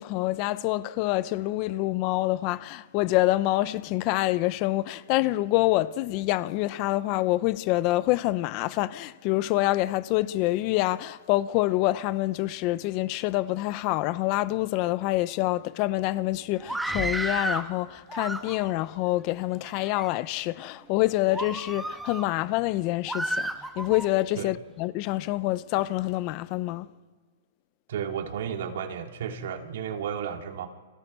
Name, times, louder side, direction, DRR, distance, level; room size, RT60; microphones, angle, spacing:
voice 1, 0.0-26.9, left 17 dB, 40° left, 0.7 m, -26 dB
Screaming, 16.6-17.7 18.1-18.8 19.5-20.1 20.6-20.8 21.3-22.3 23.1-24.1, right 1 dB, 5° right, 1.2 m, -32 dB
voice 2, 27.9-30.7, right 8 dB, 70° right, 2.9 m, -33 dB
30.0 x 25.0 x 5.6 m
hypercardioid pair, 150°, 0 cm